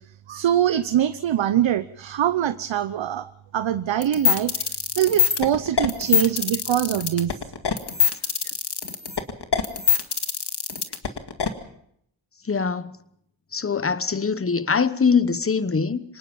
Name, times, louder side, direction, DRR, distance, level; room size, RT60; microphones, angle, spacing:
voice 1, 0.3-7.3, right 10 dB, 75° right, 0.8 m, -23 dB
sound 1, 4.0-11.5, left 7 dB, 55° left, 2.1 m, -22 dB
voice 2, 12.5-12.9 13.5-16.0, left 5 dB, 30° left, 1.1 m, -22 dB
26.0 x 18.5 x 5.4 m
wide cardioid pair, 75°, 47 cm